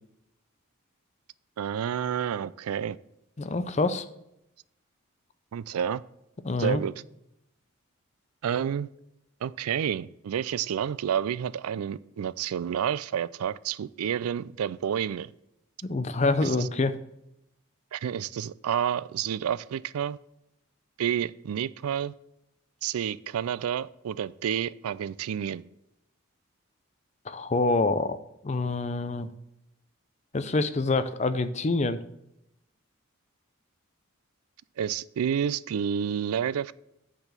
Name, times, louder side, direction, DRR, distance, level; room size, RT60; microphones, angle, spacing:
voice 1, 1.6-3.0 5.5-6.0 6.6-6.9 8.4-8.9 9.4-15.3 16.4-16.7 17.9-20.2 21.0-22.1 22.8-25.6 34.8-36.7, right 8 dB, 90° right, 18 dB, 0.3 m, -29 dB
voice 2, 3.4-4.0 6.4-6.8 15.8-16.9 27.3-28.2 28.4-29.3 30.3-32.0, left 3 dB, 30° left, 11 dB, 0.5 m, -26 dB
9.6 x 4.0 x 6.7 m, 0.84 s
head